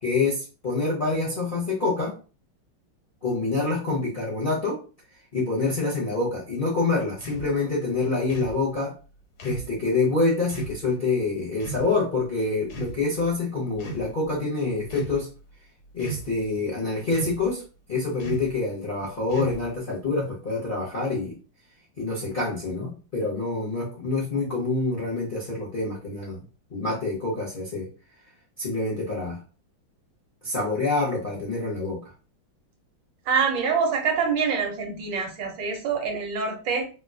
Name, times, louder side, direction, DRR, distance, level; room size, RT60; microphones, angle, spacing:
voice 1, 0.0-2.2 3.2-4.8 5.3-8.9 9.4-15.3 15.9-17.6 17.9-21.3 22.0-26.4 26.7-27.9 28.6-29.4 30.4-32.0, left 3 dB, 65° left, -4 dB, 0.5 m, -26 dB
sound 1, 7.2-7.5 8.3-8.6 9.4-9.7 10.5-10.8 11.6-11.9 12.7-13.2 13.8-14.1 14.8-15.2 16.0-16.4 17.1-17.5 18.2-18.5 19.3-19.8, right 4 dB, 85° left, 1.7 m, -35 dB
voice 2, 33.2-36.9, right 5 dB, 70° right, 3 dB, 1.3 m, -25 dB
3.6 x 2.3 x 2.6 m, 0.35 s
omnidirectional pair, 2.3 m